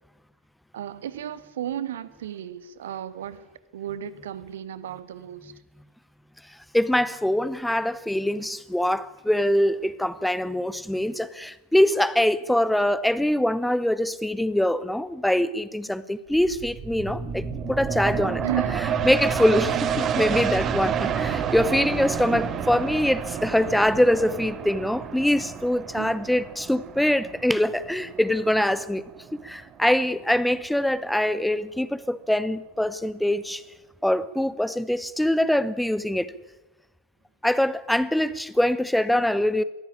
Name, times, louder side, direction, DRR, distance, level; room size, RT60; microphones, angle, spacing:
voice 1, 0.7-3.5 3.7-5.5 18.4-18.9 21.0-21.4 22.3-22.5 25.9-26.2, right 11 dB, 60° right, 1.4 m, -34 dB
voice 2, 6.7-18.4 19.0-29.0 29.4-33.6 34.0-36.3 37.4-39.6, left 1 dB, ahead, 0.8 m, -23 dB
sound 1, 16.3-29.6 30.0-30.1, right 7 dB, 25° right, 1.8 m, -29 dB
22.0 x 16.5 x 10.0 m
figure-of-eight pair, 90°, 0 cm